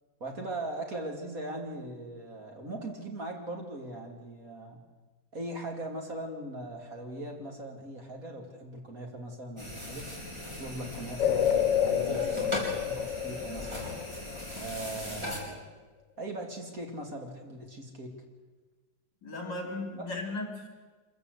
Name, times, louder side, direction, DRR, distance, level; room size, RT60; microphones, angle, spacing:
voice 1, 0.2-4.8 5.3-10.3 10.6-13.9 14.5-15.6 16.2-18.1, right 1 dB, 50° right, 2 dB, 3.3 m, -40 dB
sound 1, 9.6-15.4, left 1 dB, 15° right, 4.7 m, -38 dB
sound 2, 11.2-14.8, left 9 dB, 90° left, 1.6 m, -29 dB
voice 2, 19.2-20.7, left 2 dB, 65° left, 2 dB, 5.2 m, -36 dB
25.5 x 15.0 x 8.2 m, 1.3 s
omnidirectional pair, 1.9 m